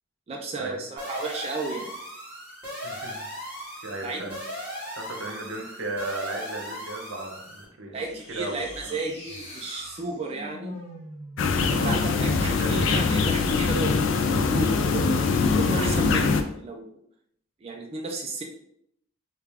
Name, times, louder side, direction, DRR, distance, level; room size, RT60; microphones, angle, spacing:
voice 1, 0.3-1.9 4.0-4.3 7.9-10.8 11.5-16.9 17.6-18.4, right 2 dB, 30° right, 1 dB, 0.3 m, -33 dB
sound 1, 1.0-7.6, equal, 15° left, 1.4 m, -38 dB
voice 2, 2.8-3.3 3.8-4.4 4.9-8.0 8.3-8.6 8.9-9.0 11.7-12.1 12.4-12.7, right 2 dB, 80° right, 2 dB, 0.7 m, -35 dB
sound 2, 7.9-13.9 14.8-15.4, equal, 30° left, 1.0 m, -41 dB
sound 3, 11.4-16.4, left 4 dB, 75° left, 0.4 m, -23 dB
3.3 x 2.4 x 3.3 m, 0.71 s
head